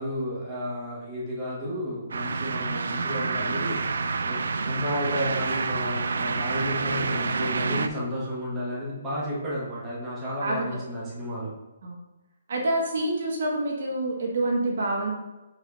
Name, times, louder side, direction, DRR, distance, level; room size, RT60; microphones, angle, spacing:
voice 1, 0.0-3.8 4.2-11.5, equal, 10° right, -8 dB, 1.4 m, -32 dB
sound 1, 2.1-7.9, right 4 dB, 75° right, 0.5 m, -28 dB
voice 2, 12.5-15.1, right 2 dB, 55° right, -1 dB, 1.4 m, -27 dB
4.9 x 4.1 x 5.2 m, 1.1 s
hypercardioid pair, 175°, 0 cm